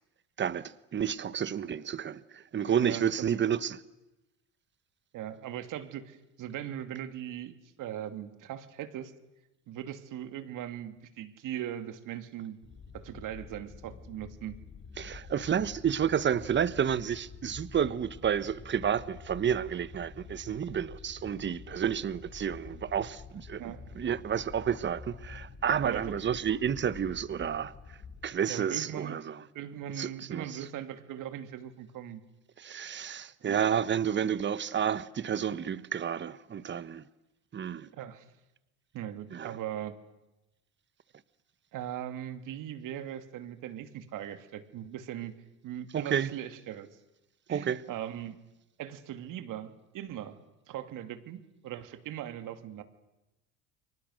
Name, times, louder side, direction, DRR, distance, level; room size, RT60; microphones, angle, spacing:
voice 1, 0.4-3.8 15.0-23.6 23.9-27.7 28.2-29.4 30.0-30.6 32.6-37.0 37.5-37.9 39.3-39.6 45.9-46.3 47.5-47.8, right 8 dB, 30° right, 1.3 m, -30 dB
voice 2, 2.8-3.3 5.1-9.1 9.7-12.6 12.9-14.5 23.6-23.9 25.8-26.2 28.5-29.2 29.5-32.2 33.5-33.6 37.8-38.2 38.9-39.9 41.7-45.3 45.6-46.9 47.5-48.4 48.8-50.4 50.7-52.8, right 11 dB, 55° right, 2.6 m, -39 dB
sound 1, 12.6-28.3, left 5 dB, 35° left, 3.1 m, -48 dB
30.0 x 23.5 x 6.6 m
supercardioid pair, 90°, 37 cm